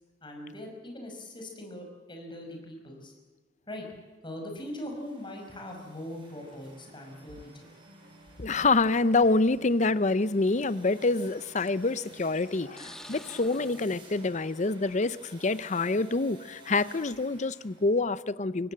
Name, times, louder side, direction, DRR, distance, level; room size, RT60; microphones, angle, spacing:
voice 1, 0.2-3.1 3.7-3.9 4.2-7.7, left 1 dB, 30° left, 5.9 m, -41 dB
sound 1, 4.8-18.0, right 2 dB, 30° right, 6.4 m, -54 dB
sound 2, 5.9-13.9, right 1 dB, 75° right, 3.2 m, -57 dB
sound 3, 6.5-6.9 7.9-8.0 9.2-9.3 9.7-9.8 11.3-11.6 12.3-15.2 15.6-16.0, left 1 dB, 5° left, 1.3 m, -50 dB
voice 2, 8.4-18.7, left 3 dB, 45° left, 0.7 m, -26 dB
24.0 x 18.0 x 7.7 m
head